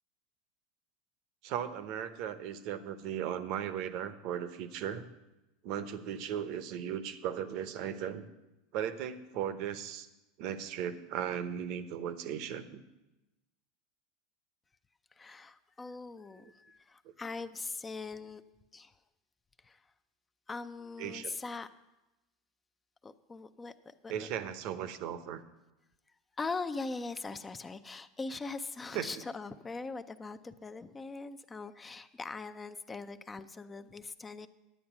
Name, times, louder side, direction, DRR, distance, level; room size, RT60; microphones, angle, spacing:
voice 1, 1.4-5.0 5.6-8.3 8.7-10.1 10.4-12.8 21.0-21.4 24.1-25.4 28.9-29.1, right 9 dB, 60° right, 13 dB, 0.9 m, -37 dB
voice 2, 15.1-18.4 18.7-18.9 19.6-19.8 20.5-21.7 23.0-24.3 26.4-34.5, left 3 dB, 20° left, 10 dB, 0.5 m, -41 dB
10.5 x 8.6 x 6.0 m, 1.0 s
supercardioid pair, 105°, 0 cm